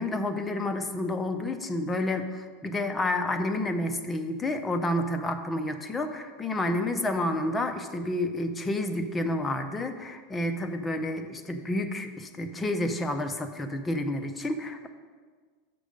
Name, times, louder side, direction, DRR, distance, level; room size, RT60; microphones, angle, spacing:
voice 1, 0.0-14.9, left 1 dB, 10° left, 7 dB, 0.5 m, -30 dB
6.8 x 6.1 x 5.0 m, 1.6 s
supercardioid pair, 150°, 0 cm